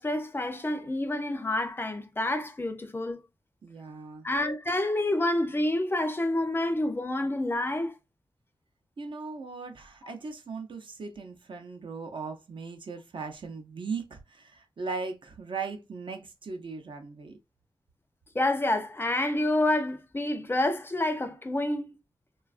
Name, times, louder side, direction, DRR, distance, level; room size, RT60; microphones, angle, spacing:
voice 1, 0.0-3.2 4.2-7.9 18.3-22.0, left 1 dB, 25° left, 0.4 m, -28 dB
voice 2, 3.6-4.3 9.0-17.4, right 4 dB, 60° right, 0.6 m, -38 dB
3.2 x 2.3 x 2.3 m
wide cardioid pair, 110°, 9 cm